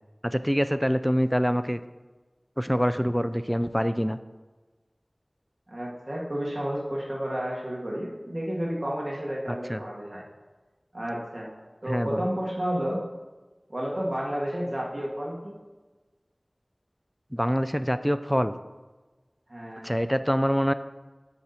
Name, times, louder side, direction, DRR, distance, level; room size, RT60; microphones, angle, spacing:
voice 1, 0.2-1.8 2.6-4.2 9.5-9.8 11.9-12.3 17.3-18.6 19.8-20.7, equal, ahead, 11 dB, 0.3 m, -25 dB
voice 2, 5.7-10.2 10.9-11.5 11.8-13.1 13.7-15.5 19.5-19.9, equal, 45° right, -4 dB, 1.7 m, -31 dB
12.0 x 4.2 x 4.2 m, 1.2 s
wide cardioid pair, 45°, 0 cm